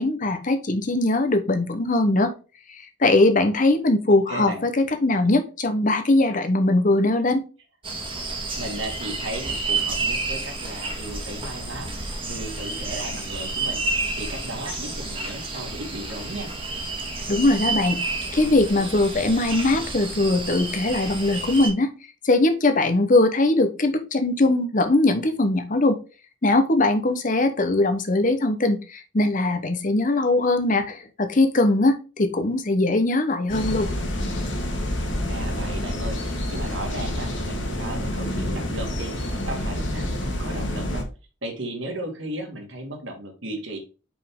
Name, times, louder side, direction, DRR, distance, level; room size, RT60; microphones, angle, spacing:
voice 1, 0.0-2.3 2.7-7.4 17.3-18.0 18.3-21.9 22.2-26.0 26.4-33.9, left 2 dB, 40° left, 9 dB, 0.8 m, -21 dB
voice 2, 4.1-4.6 8.6-16.5 35.3-41.0 41.4-43.8, right 1 dB, 60° right, 2 dB, 1.9 m, -35 dB
sound 1, 7.8-21.7, right 3 dB, 25° right, 1.5 m, -30 dB
sound 2, 33.5-41.0, left 1 dB, 60° left, 1.5 m, -28 dB
5.3 x 4.9 x 3.6 m, 0.32 s
head